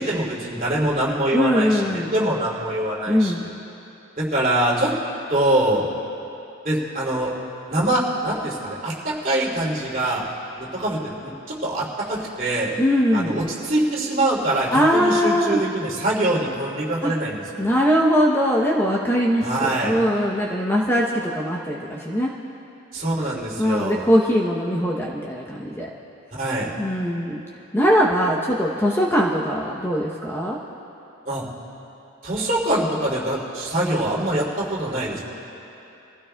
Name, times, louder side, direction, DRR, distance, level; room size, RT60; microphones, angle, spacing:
voice 1, 0.0-1.8 2.1-3.5 4.2-4.9 5.3-5.9 6.6-7.3 7.7-10.2 10.6-12.7 13.1-17.6 19.4-20.0 22.9-24.0 26.4-26.7 31.2-31.4 32.2-35.2, right 1 dB, 40° right, -6 dB, 2.8 m, -24 dB
voice 2, 1.3-2.1 3.1-3.5 12.8-13.4 14.7-15.6 17.0-17.1 17.6-22.3 23.6-25.9 26.8-27.4 27.7-30.6, equal, 10° left, -3 dB, 0.7 m, -21 dB
25.0 x 15.5 x 2.3 m, 2.9 s
head